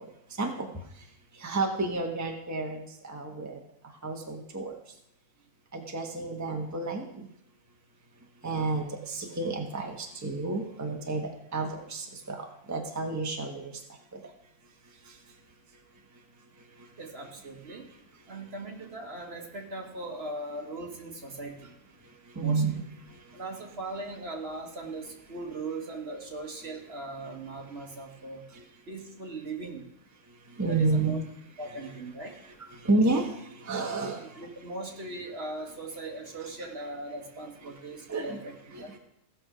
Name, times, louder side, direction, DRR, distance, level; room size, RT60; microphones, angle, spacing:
voice 1, 1.4-2.8 3.1-3.5 4.0-4.7 5.7-7.0 8.4-12.4 12.7-13.7 22.4-22.7 30.6-31.2 32.8-33.3 33.7-34.2 38.1-38.4 38.7-38.8, right 3 dB, 15° right, 2 dB, 1.1 m, -30 dB
voice 2, 17.0-17.9 18.3-21.8 22.4-22.6 23.3-28.5 28.9-29.9 30.7-31.2 31.6-32.4 34.1-38.5 38.8-39.0, right 2 dB, 45° right, 2 dB, 1.6 m, -39 dB
16.0 x 6.3 x 5.0 m, 0.80 s
omnidirectional pair, 1.5 m